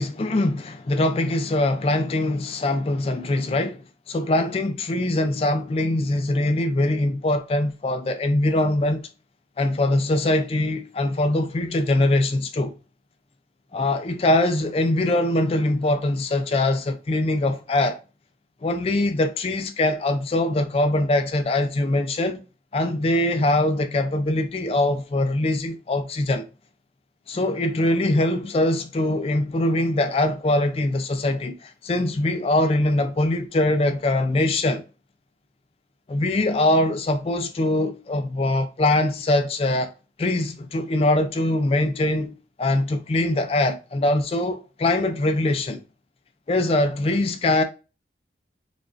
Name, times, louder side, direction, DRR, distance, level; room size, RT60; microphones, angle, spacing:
voice 1, 0.0-3.8 4.1-9.0 9.6-12.7 13.7-18.0 18.6-22.4 22.7-26.4 27.3-34.8 36.1-39.9 40.2-45.8 46.5-47.6, left 1 dB, 35° left, 0.3 m, -22 dB
4.9 x 2.5 x 2.4 m
head